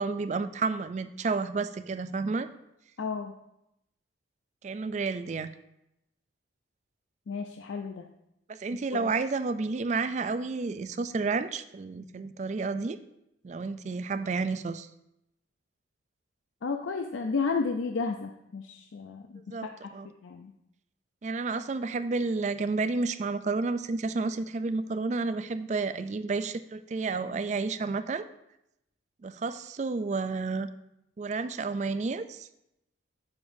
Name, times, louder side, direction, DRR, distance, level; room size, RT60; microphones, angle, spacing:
voice 1, 0.0-2.5 4.6-5.5 8.5-13.0 13.4-14.9 19.5-20.1 21.2-28.2 29.2-30.7 31.2-32.5, right 4 dB, 35° right, 12 dB, 0.3 m, -31 dB
voice 2, 3.0-3.3 7.3-8.1 9.0-9.1 16.6-19.9 20.2-20.5, left 4 dB, 90° left, 4 dB, 0.5 m, -32 dB
9.4 x 6.9 x 2.6 m, 0.84 s
head